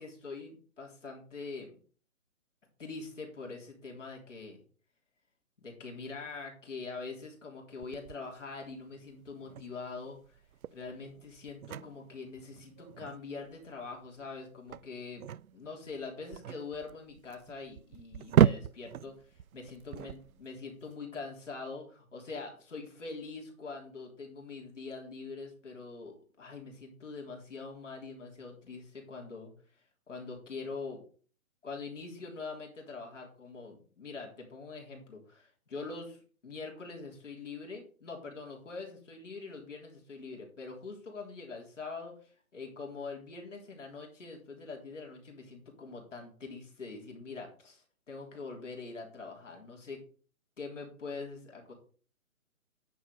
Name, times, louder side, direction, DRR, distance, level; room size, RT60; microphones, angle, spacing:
voice 1, 0.0-1.8 2.8-4.6 5.6-10.4 10.7-15.2 15.5-29.5 30.1-31.0 31.6-50.0 50.6-51.7, left 4 dB, 55° left, 0 dB, 3.6 m, -44 dB
sound 1, 7.8-20.9, right 9 dB, 75° right, 0.5 m, -34 dB
9.9 x 4.9 x 5.4 m, 0.42 s
hypercardioid pair, 175°, 43 cm